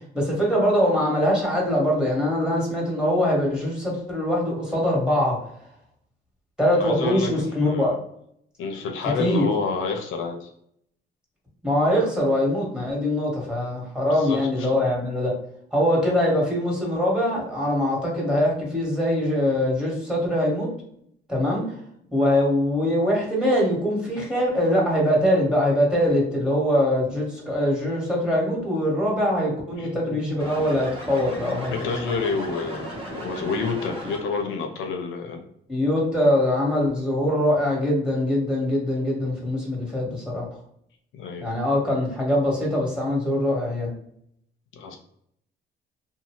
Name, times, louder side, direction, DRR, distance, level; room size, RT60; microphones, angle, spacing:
voice 1, 0.1-5.4 6.6-7.9 9.2-9.5 11.6-15.3 15.7-20.7 21.3-21.6 22.1-31.9 35.7-40.4 41.4-43.9, left 1 dB, 5° right, -4 dB, 1.3 m, -23 dB
voice 2, 6.7-8.0 8.6-10.5 14.1-14.7 29.8-30.2 31.7-35.4 41.1-41.4 44.7-45.0, left 4 dB, 80° left, 3 dB, 0.6 m, -29 dB
sound 1, 30.4-34.5, equal, 30° right, 1.1 m, -36 dB
2.7 x 2.2 x 2.9 m, 0.70 s
cardioid pair, 90°, 20 cm